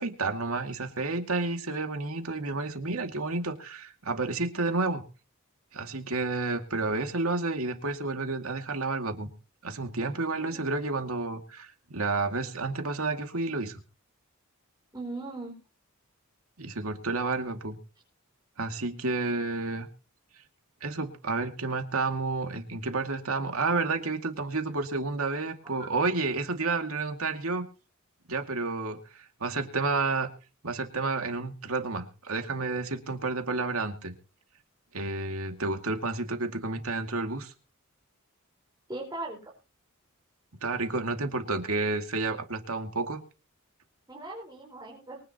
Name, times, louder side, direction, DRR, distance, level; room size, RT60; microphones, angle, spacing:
voice 1, 0.0-5.0 5.7-9.3 9.6-13.8 16.6-17.8 18.6-19.9 20.8-27.7 28.3-30.3 30.6-34.1 34.9-37.5 40.6-43.2, right 3 dB, 85° right, 5 dB, 2.3 m, -30 dB
voice 2, 14.9-15.5 38.9-39.4 44.1-45.2, right 2 dB, 20° right, -3 dB, 4.6 m, -39 dB
23.5 x 9.9 x 3.0 m, 0.35 s
head